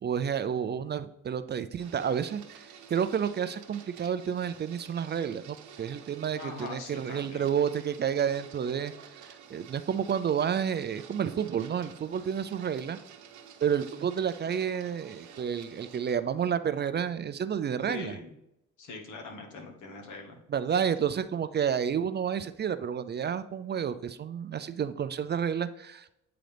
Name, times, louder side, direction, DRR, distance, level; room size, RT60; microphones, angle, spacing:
voice 1, 0.0-13.0 13.6-18.2 20.5-26.1, right 8 dB, 35° right, 12 dB, 0.4 m, -30 dB
Printer, 1.8-16.1, right 7 dB, 75° right, 0.9 m, -51 dB
voice 2, 6.4-7.5 9.5-9.7 17.8-18.4 18.8-20.4, left 3 dB, 80° left, 3 dB, 1.4 m, -42 dB
9.0 x 3.9 x 3.4 m, 0.83 s
cardioid pair, 90°, 30 cm